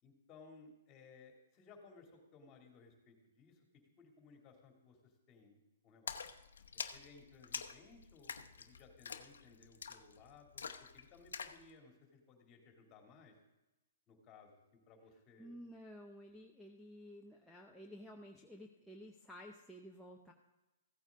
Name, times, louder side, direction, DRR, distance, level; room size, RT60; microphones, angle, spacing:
voice 1, 0.0-3.7 4.0-6.2 6.7-13.4 14.1-14.5 14.9-15.6, left 4 dB, 25° left, 2 dB, 2.3 m, -61 dB
Splash splatter, 6.1-11.6, left 6 dB, 85° left, 0.8 m, -47 dB
voice 2, 15.4-20.3, equal, ahead, -2 dB, 0.7 m, -53 dB
15.5 x 9.0 x 3.5 m, 1.0 s
hypercardioid pair, 145°, 0 cm